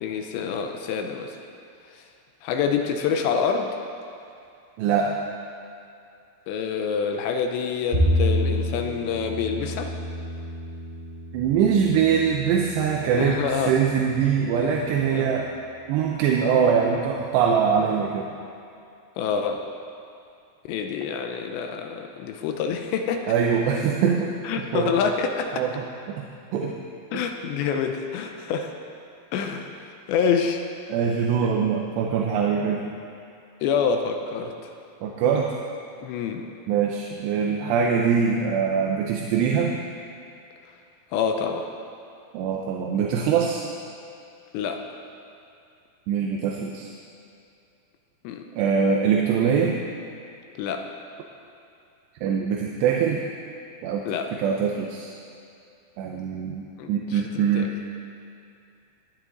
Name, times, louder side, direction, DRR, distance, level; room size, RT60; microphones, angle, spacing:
voice 1, 0.0-1.4 2.4-3.7 6.5-9.9 13.2-13.7 15.1-15.3 19.2-19.6 20.7-23.3 24.4-25.6 27.1-28.7 29.3-29.8 30.1-30.6 31.4-31.5 33.6-34.5 36.0-36.5 41.1-41.7 44.5-44.8 48.2-48.4 50.6-50.8 54.1-54.3 56.8-57.7, left 6 dB, 80° left, 5 dB, 2.8 m, -27 dB
voice 2, 4.8-5.1 11.3-13.4 13.7-15.5 15.9-18.2 23.3-24.9 25.5-26.3 26.5-26.8 30.9-32.9 35.0-35.5 36.7-39.8 42.3-43.7 46.1-46.9 48.6-49.8 52.2-53.2 53.8-54.0 54.3-55.1 56.0-56.6 56.9-57.7, right 7 dB, 80° right, 0 dB, 2.7 m, -23 dB
Bowed string instrument, 7.9-14.2, equal, 35° right, 0.8 m, -28 dB
19.5 x 10.5 x 3.9 m, 2.5 s
omnidirectional pair, 5.4 m